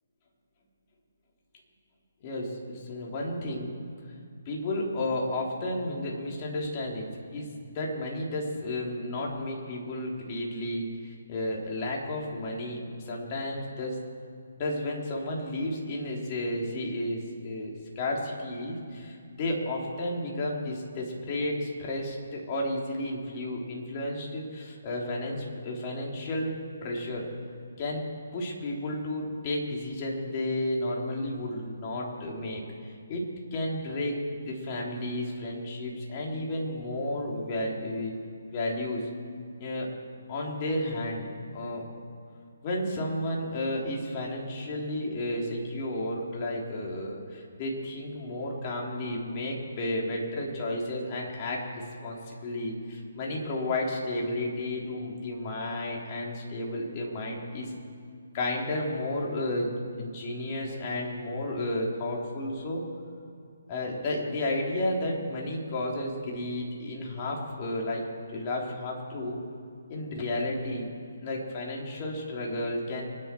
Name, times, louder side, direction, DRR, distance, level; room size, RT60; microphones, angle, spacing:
voice 1, 2.2-3.8 4.5-12.8 13.1-14.0 14.6-27.3 27.8-28.1 28.3-33.2 33.5-38.1 38.5-39.0 39.6-39.9 40.3-41.3 41.5-41.8 42.6-51.7 52.0-57.7 58.3-62.8 63.7-68.0 68.3-69.4 69.9-70.9 71.2-73.1, left 1 dB, 35° left, -2 dB, 3.5 m, -32 dB
25.0 x 10.5 x 4.6 m, 2.3 s
figure-of-eight pair, 145°, 0 cm